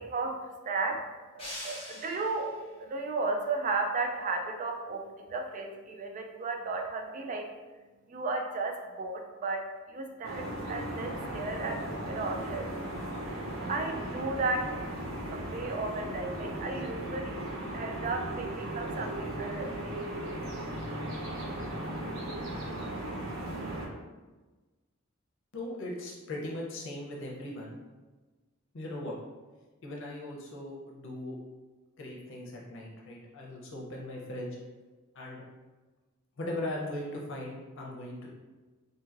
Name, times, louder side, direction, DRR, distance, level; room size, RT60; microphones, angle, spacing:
voice 1, 0.0-7.5 8.1-12.7 13.7-14.7 15.3-17.5 17.7-20.0, right 3 dB, 40° right, 3 dB, 0.3 m, -34 dB
sound 1, 1.4-2.6, left 1 dB, 30° left, 1.1 m, -42 dB
sound 2, 10.2-23.9, right 1 dB, 75° right, 0.6 m, -37 dB
voice 2, 25.5-27.7 28.7-29.1 29.8-31.4 32.0-34.5 35.1-35.4 36.4-38.3, left 1 dB, 65° left, -2 dB, 0.7 m, -39 dB
2.9 x 2.7 x 2.4 m, 1.3 s
head